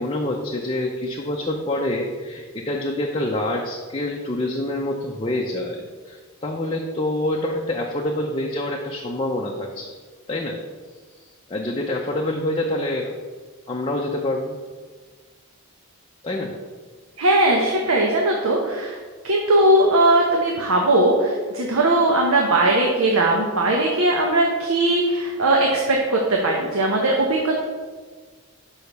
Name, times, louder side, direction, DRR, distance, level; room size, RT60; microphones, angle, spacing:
voice 1, 0.0-9.9 10.3-10.6 11.5-13.1 13.7-14.6 16.2-16.5, left 1 dB, 25° left, 0 dB, 0.6 m, -26 dB
voice 2, 17.2-19.0 19.2-27.6, right 1 dB, 70° right, 0 dB, 0.9 m, -19 dB
5.6 x 5.0 x 6.6 m, 1.4 s
head